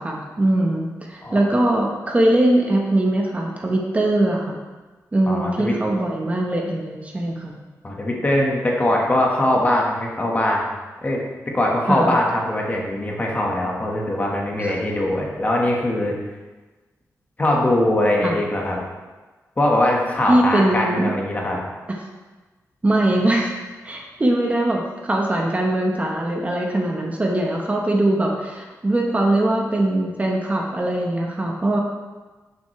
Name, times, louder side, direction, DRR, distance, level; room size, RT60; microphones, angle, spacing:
voice 1, 0.0-4.6 5.1-7.5 11.9-12.2 14.6-14.7 18.2-18.4 20.3-21.1 21.9-22.0 22.8-23.5 23.8-31.8, right 1 dB, 25° right, -1 dB, 1.2 m, -21 dB
voice 2, 5.3-5.8 7.8-10.6 11.0-11.3 11.5-16.1 17.4-18.8 19.6-21.6, left 1 dB, 25° left, -2 dB, 1.6 m, -21 dB
11.5 x 7.1 x 3.3 m, 1.3 s
wide cardioid pair, 135°, 6 cm